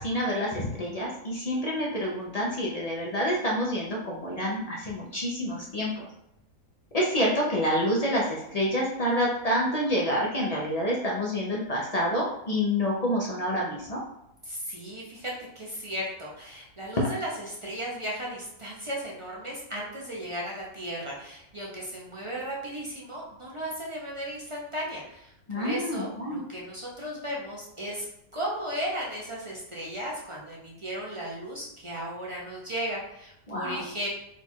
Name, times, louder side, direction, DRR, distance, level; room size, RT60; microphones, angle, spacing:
voice 1, 0.0-5.9 6.9-14.0 17.0-17.1 25.5-26.4 33.5-33.8, equal, 65° left, -3 dB, 0.3 m, -28 dB
voice 2, 14.4-28.0 28.3-34.1, equal, 40° right, -4 dB, 0.4 m, -35 dB
4.1 x 2.3 x 4.3 m, 0.82 s
omnidirectional pair, 1.6 m